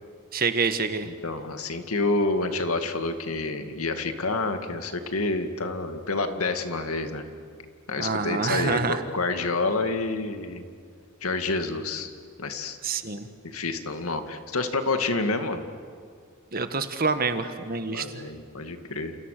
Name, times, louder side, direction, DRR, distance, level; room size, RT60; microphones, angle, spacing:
voice 1, 0.3-1.1 8.0-9.0 12.8-13.3 16.5-18.2, right 4 dB, 45° right, 9 dB, 1.6 m, -27 dB
voice 2, 1.0-7.3 7.9-10.6 11.2-12.1 12.4-12.8 13.4-15.6 17.9-19.2, left 3 dB, 85° left, 7 dB, 2.2 m, -28 dB
29.5 x 28.0 x 6.8 m, 2.2 s
head